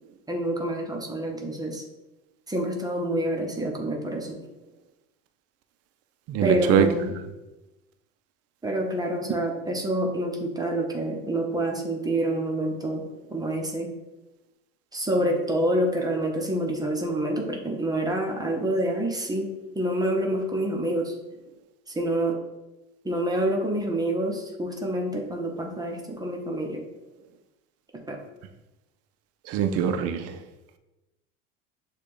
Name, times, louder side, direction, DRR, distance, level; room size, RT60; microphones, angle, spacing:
voice 1, 0.3-1.8 2.5-4.4 6.4-7.1 8.6-13.1 13.3-13.9 14.9-21.1 21.9-22.4 23.0-26.8 28.1-28.2, right 1 dB, 15° right, 1 dB, 0.8 m, -27 dB
voice 2, 6.3-6.9 29.5-30.3, right 9 dB, 55° right, 8 dB, 0.5 m, -23 dB
6.6 x 2.4 x 3.1 m, 1.0 s
supercardioid pair, 95°, 30 cm